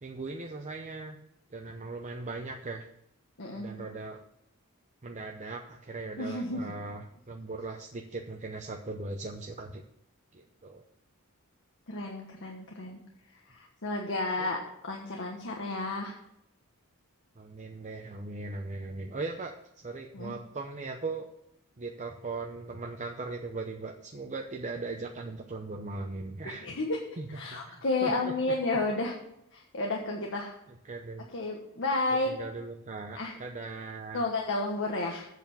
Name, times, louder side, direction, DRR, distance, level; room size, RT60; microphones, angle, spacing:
voice 1, 0.0-1.2 1.5-2.9 3.5-4.2 5.0-9.8 10.3-10.8 14.4-14.5 17.4-21.3 21.8-26.7 27.2-28.3 30.8-31.3 32.3-34.2, right 3 dB, 35° right, 3 dB, 0.7 m, -39 dB
voice 2, 3.4-3.7 6.2-6.6 11.9-13.0 13.5-16.1 20.1-20.3 26.4-27.0 27.3-29.2 29.5-30.5 31.3-32.3 33.1-33.3 34.1-35.3, left 2 dB, 60° left, 0 dB, 1.3 m, -31 dB
8.2 x 7.0 x 7.0 m, 0.81 s
head